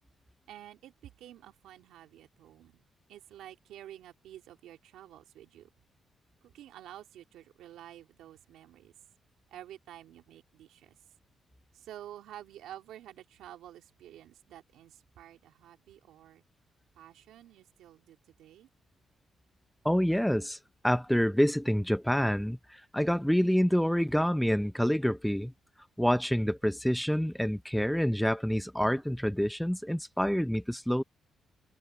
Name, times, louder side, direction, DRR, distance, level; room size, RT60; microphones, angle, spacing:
voice 1, 0.5-5.7 6.4-8.9 9.5-11.0 11.7-16.4 17.0-18.7, right 12 dB, 90° right, 3.4 m, -50 dB
voice 2, 19.8-20.6 20.8-25.5 26.0-31.0, equal, ahead, 0.8 m, -27 dB
cardioid pair, 85°, 0 cm